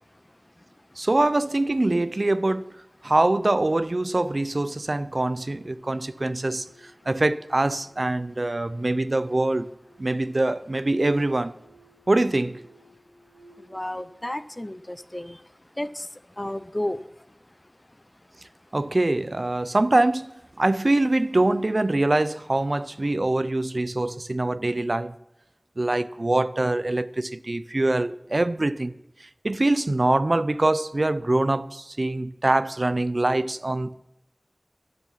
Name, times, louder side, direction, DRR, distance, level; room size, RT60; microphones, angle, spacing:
voice 1, 1.0-2.6 3.0-6.6 7.1-9.7 10.0-11.5 12.1-12.6 18.7-20.3 20.6-25.1 25.8-28.9 29.4-34.0, right 2 dB, 65° right, 0.6 m, -24 dB
sound 1, 7.8-15.8, right 2 dB, 25° right, 6.5 m, -57 dB
voice 2, 13.6-15.4 15.8-17.3, left 1 dB, 30° left, 0.6 m, -33 dB
15.0 x 12.5 x 5.7 m
wide cardioid pair, 45°, 0 cm